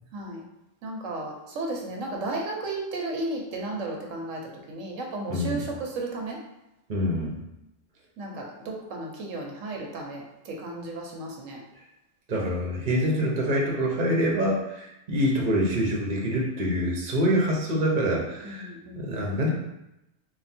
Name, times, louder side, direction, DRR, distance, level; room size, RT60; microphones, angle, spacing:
voice 1, 0.1-0.4 0.8-6.4 8.2-11.6 18.4-19.2, right 2 dB, 85° right, 0 dB, 1.2 m, -34 dB
voice 2, 5.3-5.6 6.9-7.3 12.3-19.5, equal, 45° right, -2 dB, 0.9 m, -26 dB
3.7 x 2.3 x 4.2 m, 0.89 s
omnidirectional pair, 1.3 m